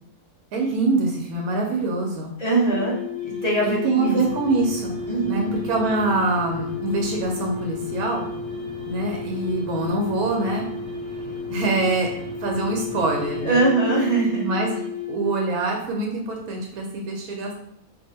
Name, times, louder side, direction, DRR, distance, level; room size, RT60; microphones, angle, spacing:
voice 1, 0.5-2.3 3.6-5.0 5.2-8.3 8.9-10.7 11.5-12.1 12.4-13.7 14.4-14.8 15.1-17.5, right 3 dB, 85° right, 0 dB, 1.1 m, -24 dB
voice 2, 2.4-3.0 3.2-4.2 5.1-5.6 13.4-14.4, right 2 dB, 35° left, -5 dB, 0.8 m, -22 dB
sound 1, 2.7-15.4, left 5 dB, 55° left, 1.2 m, -33 dB
sound 2, 4.2-13.6, equal, 80° left, 1.1 m, -40 dB
2.7 x 2.5 x 4.0 m, 0.72 s
omnidirectional pair, 1.5 m